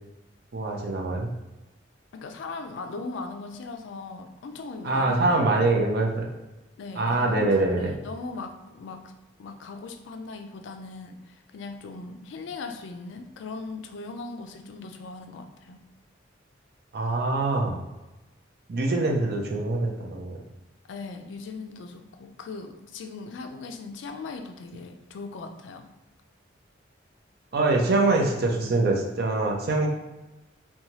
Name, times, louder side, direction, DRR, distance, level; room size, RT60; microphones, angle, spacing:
voice 1, 0.5-1.3 4.8-6.3 7.0-7.9 16.9-17.8 18.7-20.4 27.5-29.9, right 2 dB, 55° right, 0 dB, 0.5 m, -24 dB
voice 2, 2.1-5.6 6.8-9.1 9.4-15.8 20.9-25.9, left 3 dB, 70° left, 6 dB, 0.3 m, -39 dB
2.7 x 2.2 x 2.9 m, 1.0 s
head